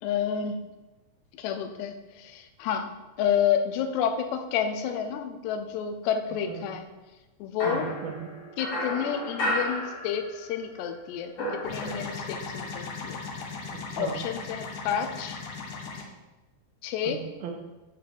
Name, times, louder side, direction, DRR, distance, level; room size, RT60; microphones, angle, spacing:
voice 1, 0.0-0.6 1.4-6.9 7.4-7.9 8.6-11.3 11.6-13.2 14.0-15.4 16.8-17.2, left 8 dB, 90° left, 7 dB, 2.9 m, -30 dB
voice 2, 6.3-6.7 7.6-8.3 13.7-14.2 17.0-17.5, right 7 dB, 75° right, 2 dB, 2.4 m, -37 dB
sound 1, 7.6-10.6 10.9-12.4, equal, 50° left, 2.5 m, -33 dB
sound 2, 11.6-16.0, left 4 dB, 70° left, 1.9 m, -37 dB
9.8 x 4.2 x 6.7 m, 1.1 s
omnidirectional pair, 4.8 m